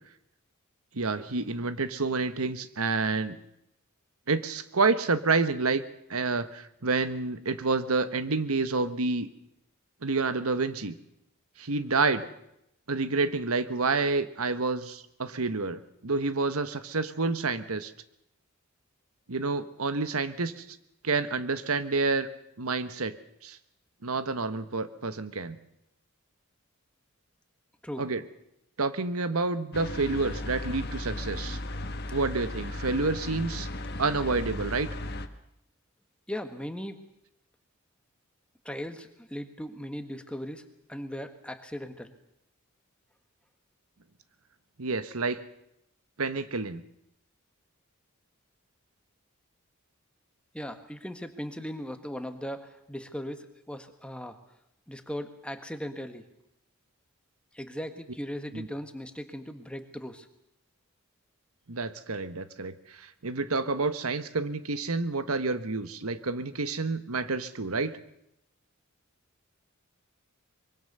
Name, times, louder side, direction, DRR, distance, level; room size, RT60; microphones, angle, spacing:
voice 1, 0.9-3.4 4.3-5.8 6.1-9.3 10.0-11.0 11.6-12.3 12.9-17.9 19.3-20.6 21.0-22.3 22.6-23.1 23.4-23.6 24.0-25.6 28.0-28.2 28.8-31.6 32.1-33.7 34.0-34.9 44.8-45.4 46.2-46.8 58.5-58.7 61.7-68.0, right 3 dB, 80° right, 12 dB, 1.3 m, -29 dB
sound 1, 29.7-35.3, left 1 dB, 45° left, 1.5 m, -36 dB
voice 2, 36.3-37.0 38.6-42.1 50.5-54.4 54.9-56.2 57.5-60.3, equal, 5° left, 7 dB, 1.6 m, -38 dB
24.5 x 23.0 x 6.8 m, 0.81 s
head